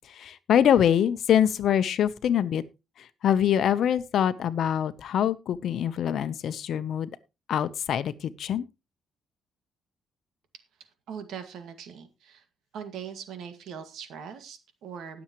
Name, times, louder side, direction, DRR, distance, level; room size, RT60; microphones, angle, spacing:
voice 1, 0.2-2.6 3.2-7.1 7.5-8.6, left 9 dB, 60° left, 14 dB, 0.8 m, -24 dB
voice 2, 11.1-12.4 12.7-15.2, right 7 dB, 80° right, 9 dB, 2.0 m, -41 dB
20.0 x 7.2 x 3.1 m, 0.26 s
cardioid pair, 155°, 0 cm